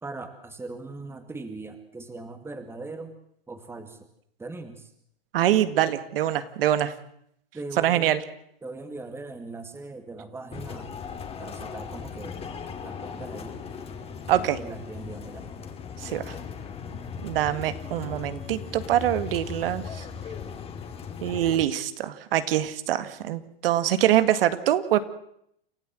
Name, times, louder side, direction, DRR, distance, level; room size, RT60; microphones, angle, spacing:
voice 1, 0.0-3.1 3.5-4.1 4.4-4.9 7.5-8.3 8.6-10.9 11.4-12.4 12.8-13.6 14.3-15.5, right 3 dB, 10° right, 8 dB, 2.2 m, -40 dB
voice 2, 5.3-6.9 7.8-8.2 14.3-14.6 16.0-16.3 17.2-19.8 21.2-25.0, right 12 dB, 70° right, 12 dB, 2.0 m, -24 dB
sound 1, 10.5-21.6, left 6 dB, 20° left, 2.5 m, -38 dB
29.0 x 13.5 x 7.7 m, 0.72 s
hypercardioid pair, 140°, 30 cm